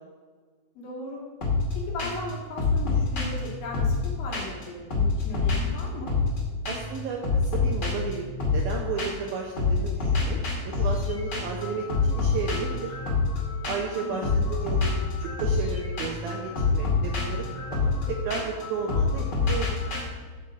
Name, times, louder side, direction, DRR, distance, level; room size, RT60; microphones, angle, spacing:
voice 1, 0.7-1.2 1.7-6.1 14.0-14.5, left 2 dB, 55° left, -3 dB, 3.3 m, -37 dB
sound 1, 1.4-1.7 2.0-2.3 2.6-4.6 4.9-6.4 6.6-7.0 7.2-9.3 9.6-20.0, left 4 dB, 35° left, 1.7 m, -27 dB
voice 2, 6.7-8.3 8.5-12.9 13.7-14.8 15.2-17.4 17.7-19.8, right 5 dB, 75° right, 0 dB, 2.3 m, -33 dB
13.0 x 5.6 x 5.2 m, 1.5 s
omnidirectional pair, 5.2 m